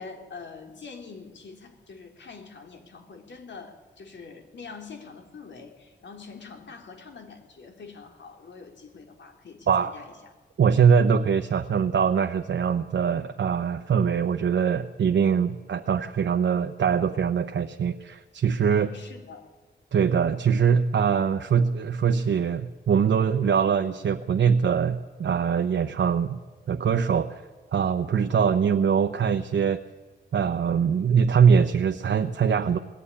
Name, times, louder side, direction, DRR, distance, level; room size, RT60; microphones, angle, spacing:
voice 1, 0.0-10.3 18.7-19.5, left 4 dB, 70° left, 4 dB, 3.5 m, -44 dB
voice 2, 10.6-18.9 19.9-26.4 26.7-27.4 27.7-29.8 30.3-32.8, right 7 dB, 70° right, 7 dB, 0.9 m, -22 dB
20.5 x 15.0 x 9.9 m, 1.3 s
wide cardioid pair, 105°, 20 cm